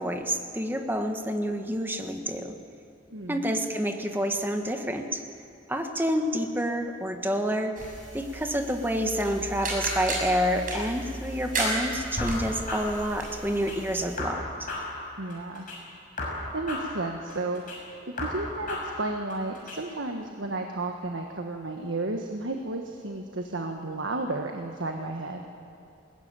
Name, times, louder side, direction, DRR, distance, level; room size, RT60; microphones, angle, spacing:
voice 1, 0.0-2.5 3.3-5.2 5.7-7.7 8.1-14.7, equal, 10° right, 4 dB, 1.5 m, -28 dB
voice 2, 3.1-3.5 15.2-15.7 16.5-17.6 18.2-25.5, right 2 dB, 80° right, 3 dB, 1.4 m, -32 dB
sound 1, 7.8-14.2, right 2 dB, 45° right, 6.6 m, -34 dB
sound 2, 12.2-13.8 14.2-15.8 16.2-17.8 18.2-19.8, left 2 dB, 45° left, 6.4 m, -35 dB
21.0 x 19.0 x 9.0 m, 2.8 s
head